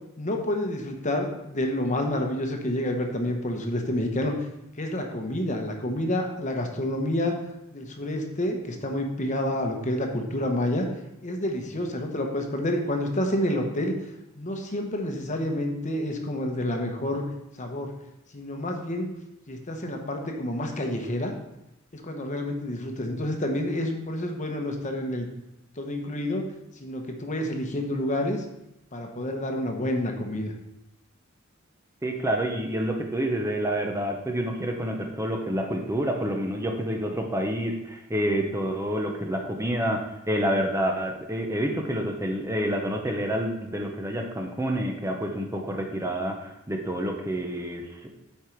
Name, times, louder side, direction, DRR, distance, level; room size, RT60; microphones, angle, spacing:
voice 1, 0.2-4.5 4.8-7.4 7.7-10.9 11.2-14.0 14.4-17.2 17.6-17.9 18.3-19.1 19.5-21.3 21.9-25.3 25.8-26.5 26.8-28.4 28.9-30.5, left 1 dB, 35° left, 3 dB, 1.0 m, -28 dB
voice 2, 32.0-48.1, equal, 15° right, 2 dB, 0.8 m, -28 dB
8.6 x 4.7 x 4.5 m, 0.87 s
head